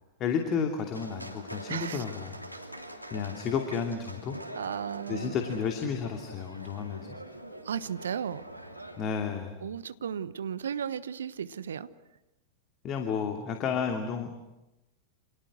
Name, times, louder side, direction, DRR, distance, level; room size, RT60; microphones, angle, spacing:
voice 1, 0.2-2.4 3.1-4.4 5.1-7.2 9.0-9.6 12.8-14.3, left 6 dB, 35° left, 4 dB, 2.8 m, -32 dB
sound 1, 0.9-9.1, right 1 dB, 90° left, 2.9 m, -44 dB
voice 2, 1.7-2.0 4.5-5.4 7.6-8.4 9.6-11.9, right 8 dB, 65° right, 14 dB, 1.2 m, -35 dB
30.0 x 27.5 x 6.4 m, 0.98 s
figure-of-eight pair, 90°, 0 cm